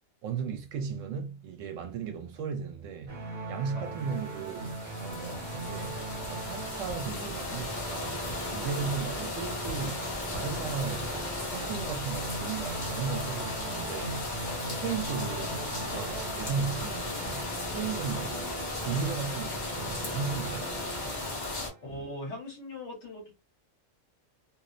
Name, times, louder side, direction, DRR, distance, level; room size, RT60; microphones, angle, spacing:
voice 1, 0.2-3.2 3.5-6.0 6.3-10.1 10.3-14.3 14.6-17.5 17.7-18.4 18.8-20.7, right 6 dB, 75° right, 0.9 m, -36 dB
sound 1, 3.1-22.0, right 3 dB, 50° right, 0.9 m, -40 dB
sound 2, 4.0-21.7, left 2 dB, 40° left, 0.8 m, -36 dB
sound 3, 6.2-6.3 6.9-7.0 7.6-7.7 8.2-8.4 8.9-9.0 9.6-9.7 10.3-10.4 10.9-11.1, equal, 80° left, 1.0 m, -41 dB
voice 2, 21.8-23.3, left 1 dB, 65° left, 1.3 m, -41 dB
2.7 x 2.0 x 2.4 m
omnidirectional pair, 1.4 m